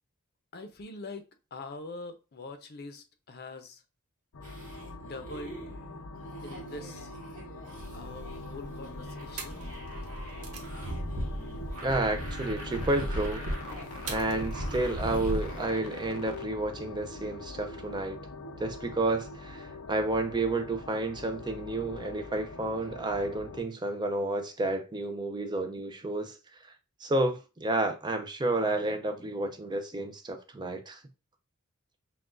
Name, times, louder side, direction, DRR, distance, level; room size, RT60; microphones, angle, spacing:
voice 1, 0.5-3.8 5.0-5.7 6.4-7.1 7.9-9.6, left 2 dB, 50° left, 0.7 m, -43 dB
sound 1, 4.3-23.6, left 2 dB, 90° left, 0.6 m, -43 dB
sound 2, 4.4-16.0, right 2 dB, 40° right, 1.6 m, -48 dB
sound 3, 7.7-15.6, equal, 90° right, 1.1 m, -37 dB
voice 2, 11.8-13.4 14.1-18.2 18.6-26.3 27.0-31.0, right 2 dB, 20° right, 0.5 m, -31 dB
5.9 x 2.3 x 2.5 m
head